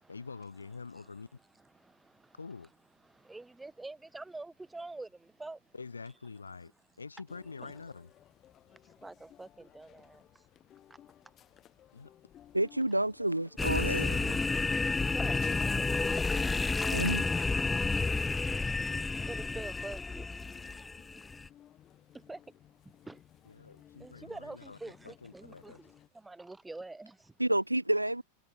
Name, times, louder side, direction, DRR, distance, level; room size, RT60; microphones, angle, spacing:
voice 1, 0.1-1.3 2.4-2.7 5.7-6.7 7.0-8.1 11.9-12.1 13.7-14.4 23.5-24.8 25.0-25.8, left 4 dB, 75° left, 2.9 m, -46 dB
voice 2, 0.9-2.7 3.0-5.8 6.6-6.7 7.6-7.7 8.7-10.5 10.9-11.0 14.1-14.5 14.9-16.5 18.0-18.7 19.1-20.9 22.1-22.6 22.8-23.2 24.0-27.4, right 2 dB, 10° right, 7.1 m, -47 dB
sound 1, 7.3-26.1, left 11 dB, 30° left, 2.6 m, -58 dB
voice 3, 12.5-14.0 16.9-17.2 27.4-28.2, right 1 dB, 85° right, 0.8 m, -29 dB
sound 2, 13.6-21.5, left 3 dB, 10° left, 0.4 m, -31 dB
figure-of-eight pair, 90°, 0 cm